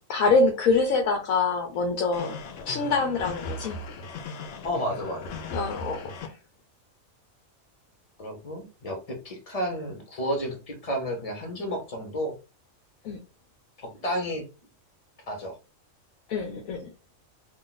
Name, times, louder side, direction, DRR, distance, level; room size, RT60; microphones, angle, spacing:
voice 1, 0.1-2.4 2.6-3.8 5.5-6.4 13.0-13.2 16.3-16.9, left 3 dB, 90° left, 4 dB, 1.1 m, -25 dB
sound 1, 2.1-6.3, left 2 dB, 60° left, 0.7 m, -38 dB
voice 2, 4.6-5.3 8.2-12.4 14.0-14.4 15.3-15.6, equal, 30° left, 3 dB, 0.8 m, -31 dB
2.5 x 2.4 x 3.9 m, 0.31 s
omnidirectional pair, 1.4 m